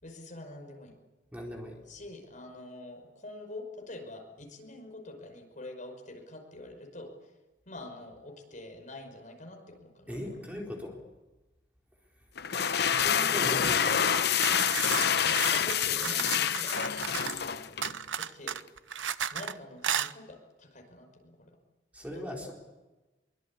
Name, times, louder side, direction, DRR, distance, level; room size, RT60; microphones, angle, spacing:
voice 1, 0.0-1.0 1.9-7.3 7.7-10.3 15.2-18.6 19.3-21.5 22.1-22.5, left 2 dB, 45° left, 3 dB, 5.5 m, -46 dB
voice 2, 1.3-1.8 10.1-11.0 12.9-14.4 21.9-22.5, equal, 10° right, -1 dB, 4.1 m, -39 dB
sound 1, 12.4-18.0, left 8 dB, 60° left, 0.8 m, -27 dB
sound 2, 14.1-17.5 17.8-19.5 19.8-20.1, right 8 dB, 90° right, 0.8 m, -34 dB
24.0 x 23.5 x 8.6 m, 1.1 s
head